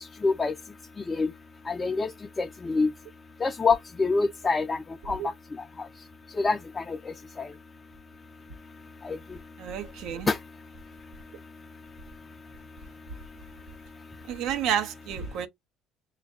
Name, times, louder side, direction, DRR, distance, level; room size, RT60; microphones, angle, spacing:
voice 1, 0.2-0.5 1.1-1.3 1.7-2.1 2.4-2.9 3.4-4.8 5.1-5.2 6.4-7.0 9.1-9.2 10.3-10.4, left 4 dB, 25° left, 0.5 m, -25 dB
voice 2, 9.6-10.3 14.3-15.5, right 9 dB, 70° right, 0.7 m, -30 dB
6.1 x 2.4 x 2.3 m
hypercardioid pair, 70°, 0 cm